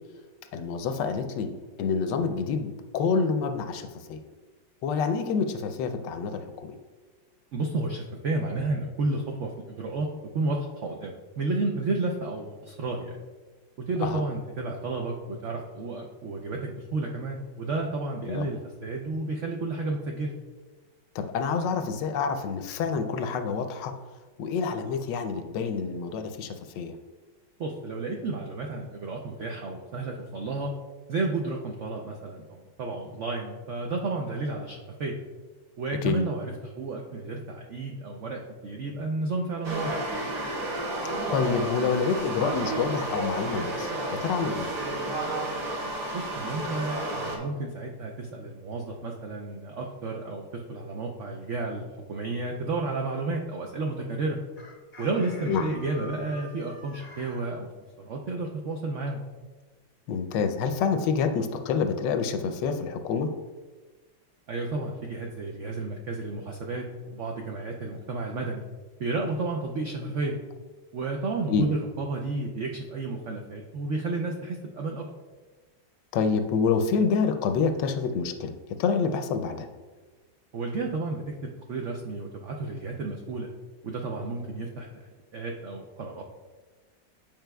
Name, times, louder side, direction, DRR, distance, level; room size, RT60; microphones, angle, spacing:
voice 1, 0.5-1.5 1.8-4.2 4.8-6.8 14.0-14.2 18.3-18.5 21.1-23.9 24.4-27.0 36.0-36.2 41.3-44.7 55.5-55.6 60.1-63.3 71.5-71.7 76.1-78.5 78.8-79.7, left 5 dB, 75° left, 7 dB, 1.2 m, -27 dB
voice 2, 7.5-10.1 10.3-13.2 13.9-20.3 27.6-30.7 31.1-35.2 35.8-40.0 46.1-54.4 55.0-57.7 58.0-59.2 64.5-68.6 69.0-70.4 70.9-75.1 80.5-83.5 83.8-85.0 85.3-86.2, right 3 dB, 85° right, 1 dB, 0.6 m, -32 dB
sound 1, 39.6-47.4, right 2 dB, 65° right, 1.7 m, -31 dB
Chicken rooster, 54.6-57.5, left 2 dB, 35° left, 0.8 m, -47 dB
8.9 x 5.1 x 2.2 m, 1.3 s
omnidirectional pair, 2.0 m